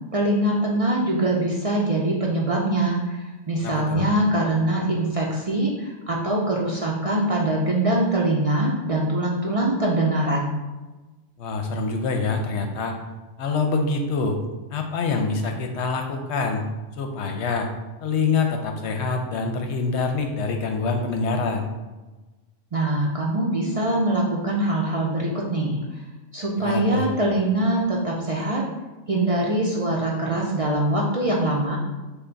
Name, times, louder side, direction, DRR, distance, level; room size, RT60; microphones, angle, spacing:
voice 1, 0.1-10.5 22.7-26.0 26.3-28.6 29.1-31.8, right 1 dB, 45° right, -3 dB, 0.4 m, -23 dB
voice 2, 3.6-4.1 11.4-12.9 13.4-14.4 14.7-16.6 17.0-17.7 18.0-21.7 26.6-27.1, left 4 dB, 70° left, 4 dB, 0.9 m, -25 dB
5.5 x 2.3 x 3.9 m, 1.2 s
omnidirectional pair, 1.2 m